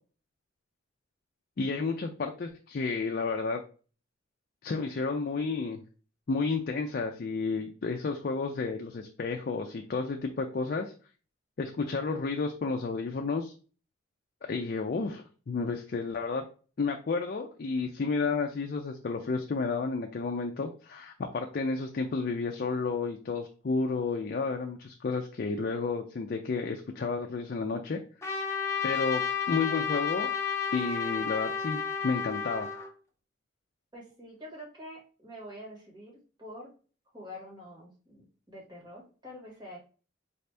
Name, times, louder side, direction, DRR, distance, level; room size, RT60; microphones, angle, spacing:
voice 1, 1.6-3.6 4.6-5.8 6.3-10.9 11.6-13.5 14.4-16.5 16.8-28.0 28.8-30.3 30.7-32.7, left 4 dB, 50° left, 3 dB, 0.4 m, -31 dB
Trumpet, 28.2-32.9, left 7 dB, 15° left, 0.7 m, -31 dB
voice 2, 33.9-36.1 36.4-36.7 37.1-39.8, equal, 25° right, -4 dB, 1.8 m, -46 dB
4.1 x 2.7 x 3.3 m, 0.37 s
head